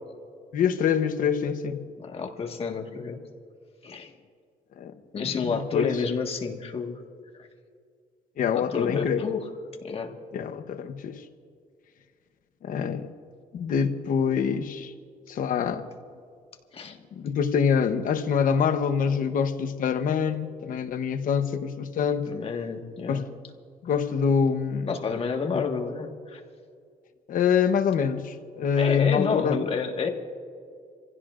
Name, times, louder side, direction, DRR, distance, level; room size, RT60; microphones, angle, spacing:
voice 1, 0.5-1.8 4.8-6.0 8.4-9.3 10.3-11.2 12.6-13.1 13.5-14.9 15.3-15.9 17.2-22.3 23.1-23.2 23.8-24.9 25.5-25.6 27.3-29.6, left 7 dB, 60° left, 8 dB, 1.0 m, -25 dB
voice 2, 2.0-3.2 3.8-4.1 5.1-7.0 7.4-7.5 8.5-9.4 9.8-10.1 16.7-17.0 22.2-23.3 24.9-26.4 28.8-30.1, left 5 dB, 40° left, 3 dB, 1.6 m, -30 dB
27.5 x 16.0 x 2.5 m, 2.2 s
cardioid pair, 120°, 16 cm